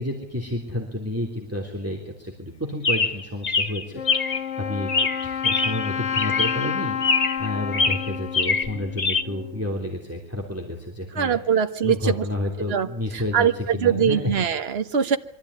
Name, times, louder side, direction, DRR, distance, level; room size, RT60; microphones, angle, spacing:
voice 1, 0.0-11.4 11.8-14.3, left 1 dB, 10° right, 1 dB, 3.4 m, -30 dB
Chirp tweet, 2.8-4.5 4.9-5.9 6.1-6.7 7.0-7.5 7.7-9.2, left 4 dB, 35° left, 1.1 m, -24 dB
Wind instrument woodwind instrument, 3.9-9.7, left 8 dB, 65° left, 1.9 m, -30 dB
voice 2, 11.1-12.2 12.7-12.9 13.1-15.2, right 8 dB, 50° right, 8 dB, 1.5 m, -22 dB
24.0 x 14.0 x 9.8 m, 0.68 s
omnidirectional pair, 1.4 m